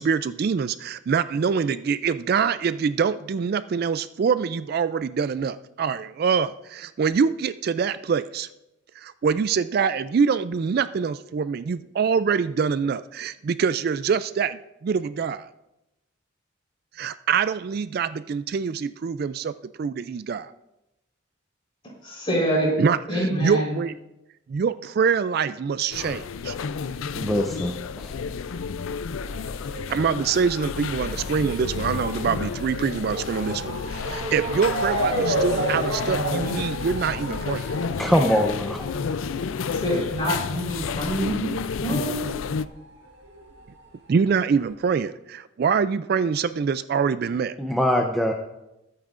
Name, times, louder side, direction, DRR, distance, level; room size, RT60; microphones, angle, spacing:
voice 1, 0.0-8.5 9.0-15.5 16.9-19.5 19.8-20.5 22.8-23.9 24.5-26.6 29.9-37.7 44.1-47.6, right 6 dB, 50° right, 14 dB, 0.3 m, -25 dB
voice 2, 22.0-22.7 23.1-23.7 39.7-41.5 41.8-42.4, equal, 25° left, -2 dB, 4.0 m, -26 dB
sound 1, 25.9-42.7, left 5 dB, 80° left, 0.4 m, -31 dB
voice 3, 27.2-28.1 38.0-38.9 47.6-48.3, equal, ahead, 1 dB, 0.6 m, -23 dB
Motor vehicle (road) / Siren, 29.3-42.3 42.5-43.7 44.4-44.5 44.7-44.8, right 1 dB, 65° right, 1.7 m, -32 dB
20.5 x 8.9 x 2.5 m, 0.92 s
head